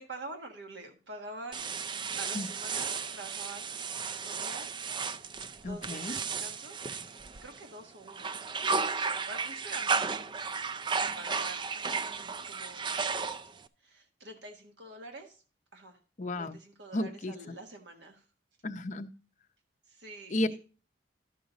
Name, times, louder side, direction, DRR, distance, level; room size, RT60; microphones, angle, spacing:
voice 1, 0.0-1.7 2.2-3.7 3.9-5.3 5.6-6.8 7.4-8.3 8.8-10.1 11.1-11.6 12.0-12.9 13.8-15.4 15.7-16.0 16.4-18.2 19.9-20.6, right 2 dB, 65° right, 3 dB, 1.5 m, -46 dB
sound 1, 1.5-7.7 8.1-13.7, right 5 dB, 25° right, 0.4 m, -34 dB
voice 2, 5.6-6.1 16.2-16.6 16.9-17.3 18.6-19.1 20.3-20.5, left 1 dB, 40° left, 7 dB, 0.7 m, -32 dB
12.5 x 6.4 x 4.0 m, 0.36 s
head